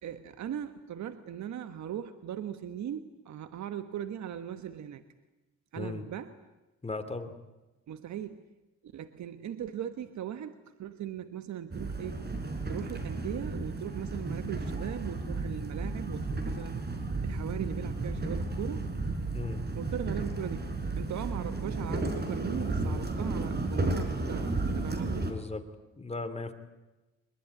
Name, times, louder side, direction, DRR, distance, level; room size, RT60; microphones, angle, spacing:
voice 1, 0.0-5.0 5.7-6.3 7.9-8.5 8.8-12.3 12.7-16.8 17.2-18.9 19.7-25.3, right 9 dB, 65° right, 10 dB, 1.4 m, -39 dB
voice 2, 6.8-7.3 19.3-19.6 25.2-25.6 26.0-26.5, left 3 dB, 20° left, 8 dB, 2.9 m, -36 dB
sound 1, 11.7-25.3, right 2 dB, 35° right, 4.6 m, -33 dB
23.0 x 22.0 x 9.6 m, 1.1 s
cardioid pair, 90°, 30 cm